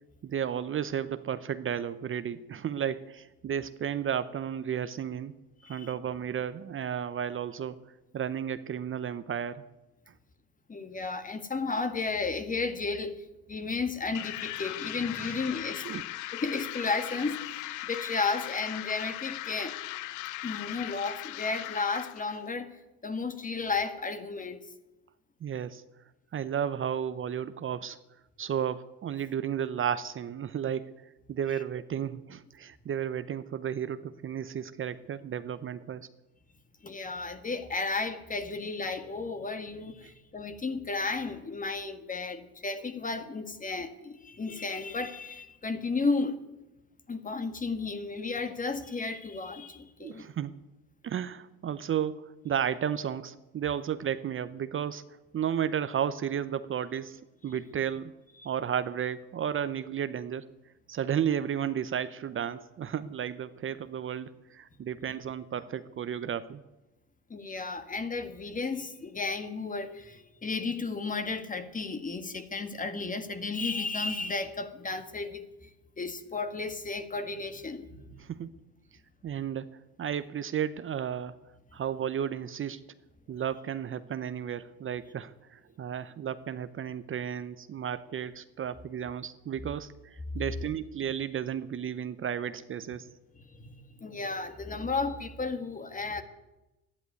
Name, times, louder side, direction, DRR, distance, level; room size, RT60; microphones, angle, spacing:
voice 1, 0.2-5.3 5.7-9.6 15.2-15.4 15.8-16.0 25.4-25.8 26.3-28.0 28.4-31.0 31.3-36.1 40.0-40.1 50.0-50.5 51.0-55.0 55.3-58.2 58.4-60.5 60.9-66.6 78.2-78.5 79.2-81.3 81.7-82.8 83.3-93.1, right 9 dB, 40° right, 0.7 m, -33 dB
voice 2, 10.7-15.9 16.3-19.8 20.4-22.7 23.0-24.7 36.8-46.4 47.1-50.3 58.4-58.5 67.3-75.7 76.0-78.2 93.3-96.2, left 4 dB, 25° left, 1.7 m, -33 dB
sound 1, 14.1-22.4, left 17 dB, 65° left, 0.6 m, -39 dB
12.5 x 10.5 x 9.7 m
supercardioid pair, 85°, 33 cm